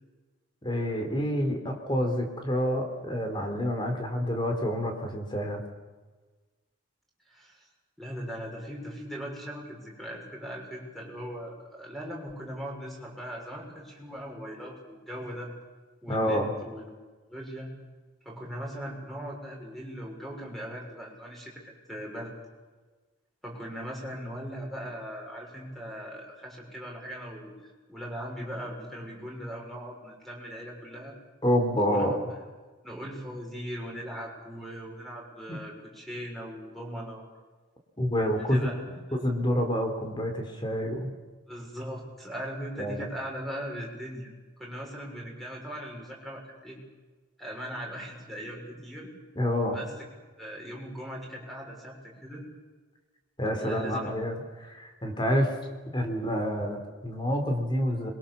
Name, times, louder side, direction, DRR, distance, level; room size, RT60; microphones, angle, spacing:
voice 1, 0.6-5.6 16.1-16.5 31.4-32.1 35.5-35.6 38.0-38.6 38.9-41.1 42.8-43.0 49.4-49.8 53.4-55.6 55.9-58.1, equal, 25° left, 4 dB, 4.1 m, -28 dB
voice 2, 7.3-7.7 8.0-15.5 16.0-16.9 17.3-17.7 18.2-22.3 23.4-31.1 31.9-32.4 32.8-37.2 38.2-38.7 39.1-39.2 41.5-44.3 44.6-46.8 47.4-49.1 49.7-49.9 50.4-52.4 53.6-54.1, equal, ahead, -1 dB, 6.7 m, -39 dB
26.0 x 23.0 x 7.2 m, 1.3 s
head